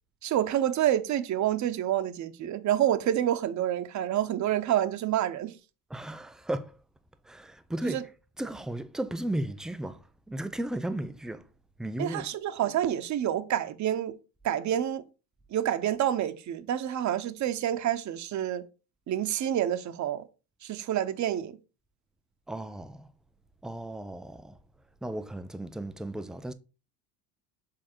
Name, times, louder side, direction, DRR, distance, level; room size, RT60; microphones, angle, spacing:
voice 1, 0.2-5.6 7.8-8.0 12.0-14.2 14.4-15.0 15.5-18.6 19.1-20.3 20.6-21.6, right 11 dB, 40° right, 0.9 m, -28 dB
voice 2, 5.9-6.8 7.2-8.1 8.4-11.5 11.8-12.3 22.5-23.1 23.6-24.6 25.0-26.5, right 1 dB, ahead, 0.3 m, -35 dB
7.7 x 3.6 x 4.4 m
supercardioid pair, 100°, 45 cm